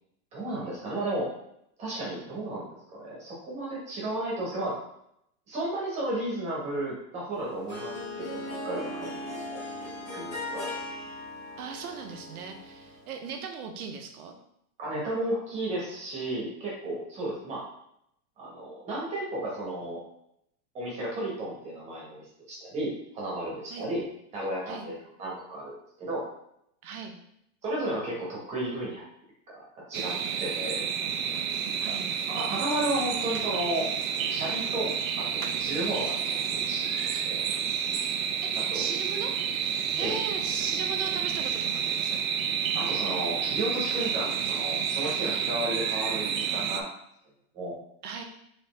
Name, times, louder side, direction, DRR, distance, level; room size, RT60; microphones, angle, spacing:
voice 1, 0.3-1.3 1.8-4.8 5.5-10.7 14.8-17.6 18.4-20.0 20.7-24.0 24.3-26.2 27.6-29.0 29.5-30.8 31.8-31.9 32.3-33.9 34.3-37.5 38.7-38.9 40.0-40.2 42.7-46.9 47.5-47.7, right 1 dB, 15° right, -5 dB, 1.2 m, -33 dB
Harp, 7.3-13.1, left 1 dB, 10° left, 1.8 m, -38 dB
voice 2, 11.6-14.3 23.7-23.9 24.7-24.9 26.8-27.1 31.8-32.1 38.4-39.4 39.9-42.2 48.0-48.2, right 6 dB, 85° right, 5 dB, 1.0 m, -38 dB
sound 1, 29.9-46.8, right 7 dB, 65° right, 0.6 m, -30 dB
4.2 x 3.4 x 3.3 m, 0.75 s
supercardioid pair, 175°, 43 cm